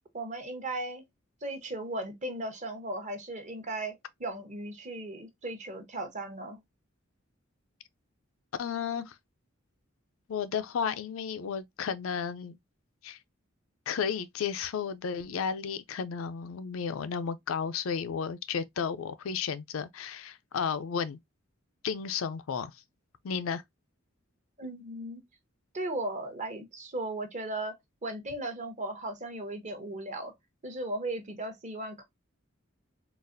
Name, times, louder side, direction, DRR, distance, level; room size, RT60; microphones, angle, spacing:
voice 1, 0.1-1.0 1.4-6.6 24.6-25.2 25.7-27.7 28.0-30.3 30.6-32.0, right 2 dB, 35° right, 0.8 m, -36 dB
voice 2, 8.6-9.2 10.3-12.6 13.0-13.2 13.9-21.2 21.8-22.7 23.2-23.6, left 6 dB, 85° left, 0.4 m, -33 dB
4.0 x 2.4 x 2.5 m
head